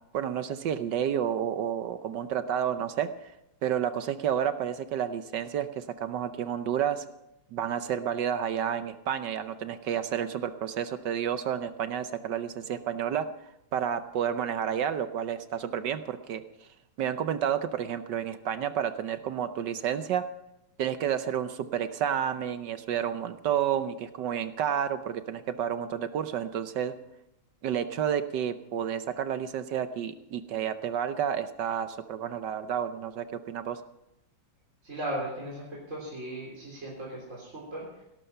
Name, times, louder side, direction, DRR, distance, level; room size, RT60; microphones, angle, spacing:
voice 1, 0.1-3.3 3.6-7.1 7.5-16.7 17.0-20.3 20.8-26.9 27.6-33.8, right 9 dB, 65° right, 11 dB, 1.3 m, -30 dB
voice 2, 34.8-38.0, right 1 dB, 35° right, -4 dB, 4.1 m, -37 dB
17.5 x 12.0 x 5.6 m, 0.86 s
omnidirectional pair, 2.2 m